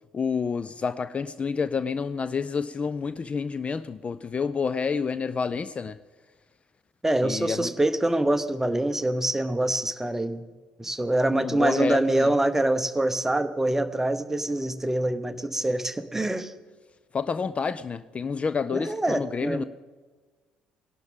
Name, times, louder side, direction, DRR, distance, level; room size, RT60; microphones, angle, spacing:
voice 1, 0.1-6.0 7.2-7.7 11.3-12.3 17.1-19.6, left 5 dB, 30° left, 0.4 m, -29 dB
voice 2, 7.0-10.4 10.8-16.5 18.7-19.6, right 1 dB, 10° right, 0.9 m, -25 dB
19.5 x 11.5 x 3.6 m
figure-of-eight pair, 50°, 4 cm